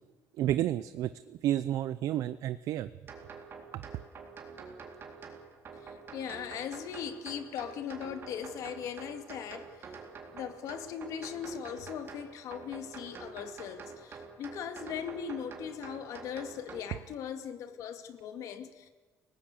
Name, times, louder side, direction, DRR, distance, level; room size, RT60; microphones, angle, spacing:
voice 1, 0.3-2.9 3.7-3.8, right 12 dB, 80° right, 0.7 m, -31 dB
sound 1, 3.1-16.8, right 5 dB, 40° right, 3.8 m, -47 dB
voice 2, 5.8-10.0 10.3-18.9, left 8 dB, 75° left, 2.3 m, -39 dB
30.0 x 19.0 x 6.8 m
cardioid pair, 155°, 6 cm